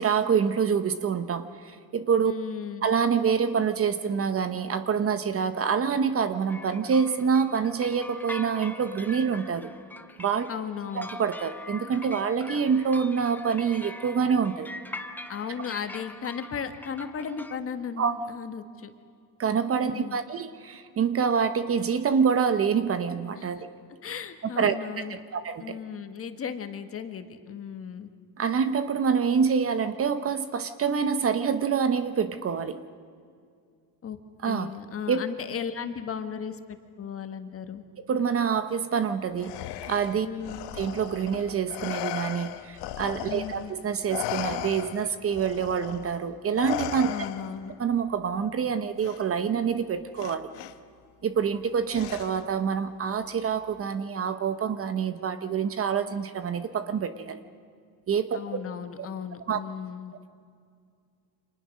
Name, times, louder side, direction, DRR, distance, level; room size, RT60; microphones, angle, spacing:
voice 1, 0.0-2.3 2.8-9.7 10.2-10.5 10.9-14.7 18.0-18.1 19.4-23.7 24.6-25.0 25.3-25.8 28.4-32.8 34.4-34.7 35.1-35.2 38.1-40.3 40.8-47.1 47.8-50.5 51.2-57.4 58.1-58.4 59.5-59.6, right 6 dB, 30° right, 11 dB, 1.0 m, -26 dB
voice 2, 2.2-2.9 10.5-11.1 15.3-18.9 19.7-20.2 23.4-23.5 24.0-25.2 25.6-28.1 34.0-34.2 34.4-37.8 40.2-40.6 43.3-43.7 47.0-47.7 58.3-60.1, left 7 dB, 30° left, 8 dB, 1.5 m, -36 dB
sound 1, 6.5-17.6, left 2 dB, 5° left, 0.8 m, -42 dB
Respiratory sounds, 39.4-43.7 44.1-47.7 49.0-49.2 50.2-50.7 51.9-52.6, left 12 dB, 75° left, 1.4 m, -36 dB
29.5 x 26.5 x 6.4 m, 2.3 s
cardioid pair, 160°, 42 cm